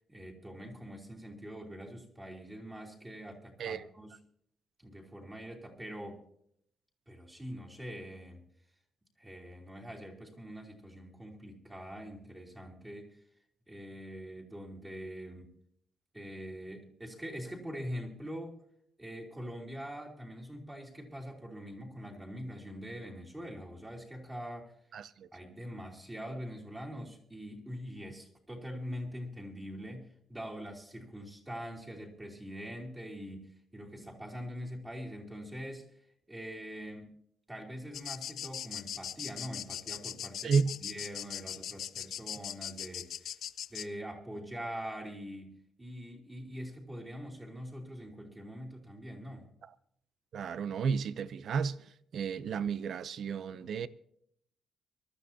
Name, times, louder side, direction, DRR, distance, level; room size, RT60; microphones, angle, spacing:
voice 1, 0.1-4.2 4.8-6.2 7.1-8.4 9.2-13.2 13.7-15.5 16.1-18.6 19.0-24.7 25.3-35.9 36.3-37.1 37.5-43.4 43.7-49.5, equal, 15° right, 3.1 m, -43 dB
voice 2, 24.9-25.3 40.4-40.7 50.3-53.9, right 6 dB, 60° right, 0.6 m, -32 dB
sound 1, 37.9-43.9, left 10 dB, 70° left, 0.5 m, -40 dB
24.0 x 12.5 x 2.8 m
cardioid pair, 140°, 0 cm